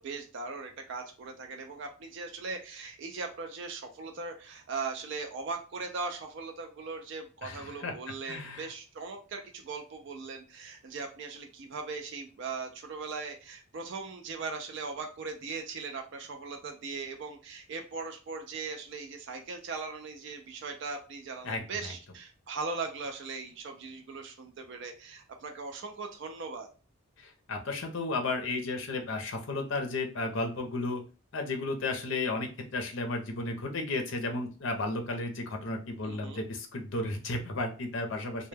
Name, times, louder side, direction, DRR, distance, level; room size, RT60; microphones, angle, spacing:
voice 1, 0.0-26.7 36.0-36.4, right 4 dB, 55° right, 4 dB, 0.4 m, -39 dB
voice 2, 7.4-7.9 8.3-8.7 21.4-21.9 27.2-31.0 31.3-38.5, left 2 dB, 60° left, 4 dB, 0.5 m, -33 dB
2.2 x 2.1 x 3.2 m, 0.35 s
head